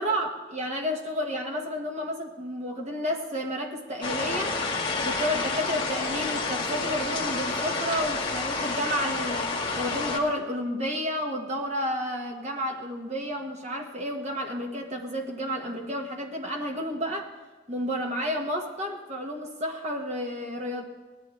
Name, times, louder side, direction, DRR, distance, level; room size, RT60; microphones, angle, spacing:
voice 1, 0.0-4.5 5.0-17.3 17.7-20.9, equal, 35° right, 1 dB, 1.6 m, -31 dB
sound 1, 4.0-10.2, left 3 dB, 25° left, 1.6 m, -29 dB
18.0 x 11.5 x 3.3 m, 1.3 s
head